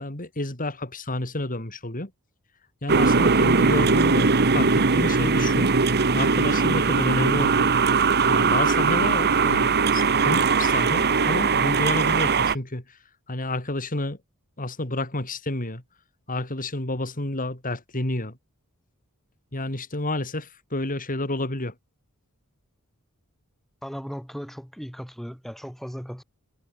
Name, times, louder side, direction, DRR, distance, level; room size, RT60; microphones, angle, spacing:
voice 1, 0.0-2.1 2.8-5.7 6.1-7.7 8.3-13.0 13.3-14.2 14.6-15.8 16.3-18.4 19.5-21.7, left 2 dB, 40° left, 4.2 m, -30 dB
sound 1, 2.9-12.5, right 4 dB, 50° right, 1.4 m, -20 dB
voice 2, 23.8-26.2, equal, ahead, 4.9 m, -37 dB
head